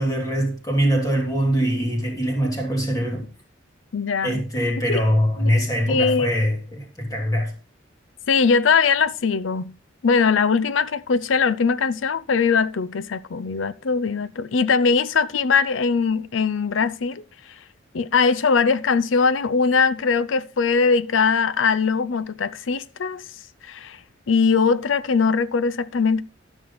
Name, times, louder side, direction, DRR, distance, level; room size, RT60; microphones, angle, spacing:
voice 1, 0.0-3.3 4.2-7.5, equal, 20° left, 2.7 m, -23 dB
voice 2, 3.9-4.4 4.9-5.0 5.4-5.5 5.9-6.3 8.3-9.7 10.0-17.2 17.9-23.2 23.6-24.0 24.3-26.2, left 5 dB, 85° left, 0.5 m, -21 dB
12.5 x 6.3 x 3.9 m
head